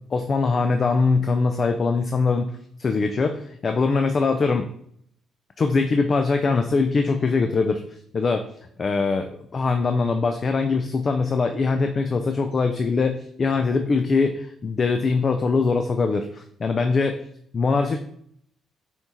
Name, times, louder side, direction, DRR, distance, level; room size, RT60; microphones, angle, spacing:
voice 1, 0.1-2.5 2.8-4.6 5.6-7.8 8.1-8.5 8.8-17.2 17.5-18.0, left 4 dB, 40° left, 6 dB, 0.3 m, -22 dB
5.7 x 3.0 x 2.8 m, 0.66 s
cardioid pair, 90°, 0 cm